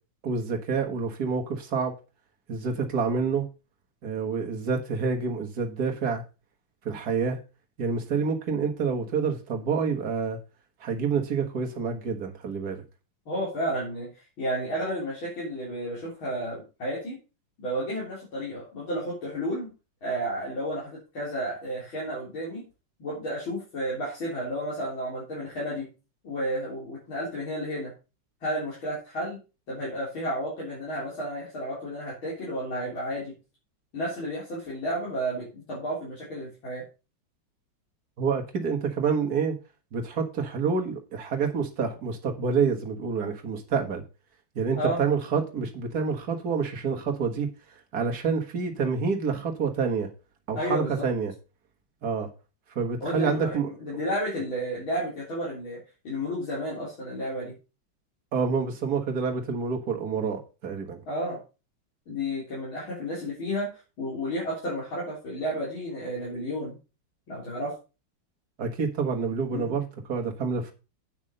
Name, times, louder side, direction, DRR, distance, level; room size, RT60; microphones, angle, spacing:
voice 1, 0.2-2.0 2.5-3.5 4.0-6.2 6.9-7.4 7.8-10.4 10.8-12.8 38.2-39.6 39.9-44.0 44.6-50.1 50.5-51.3 52.0-52.3 52.8-53.7 58.3-61.0 68.6-70.7, right 5 dB, 50° right, 2.0 m, -28 dB
voice 2, 13.3-14.1 14.4-17.2 17.6-19.7 20.0-22.6 23.0-25.9 26.2-27.9 28.4-29.4 29.7-33.3 33.9-36.8 44.8-45.0 50.6-51.1 53.0-55.8 56.0-57.5 61.1-61.4 62.1-63.7 64.0-66.7 67.3-67.7 69.5-69.8, equal, 85° left, 4.7 m, -32 dB
9.0 x 6.0 x 5.3 m
omnidirectional pair, 2.2 m